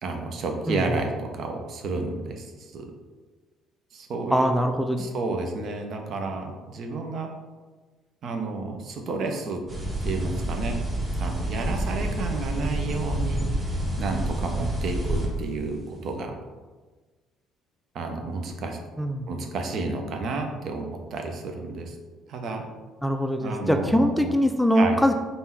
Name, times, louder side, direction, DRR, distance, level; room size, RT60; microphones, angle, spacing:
voice 1, 0.0-2.9 3.9-4.5 5.0-7.3 8.2-9.6 10.0-10.8 11.2-13.4 14.0-16.3 17.9-18.8 19.3-22.0 22.3-22.7 23.4-24.3 24.8-24.9, right 3 dB, 60° right, 4 dB, 0.7 m, -31 dB
voice 2, 4.3-5.1 19.0-19.3 23.0-25.1, equal, ahead, 5 dB, 0.4 m, -22 dB
sound 1, 9.7-15.3, right 1 dB, 30° right, 1.2 m, -28 dB
3.6 x 2.7 x 4.3 m, 1.3 s
supercardioid pair, 65°, 0 cm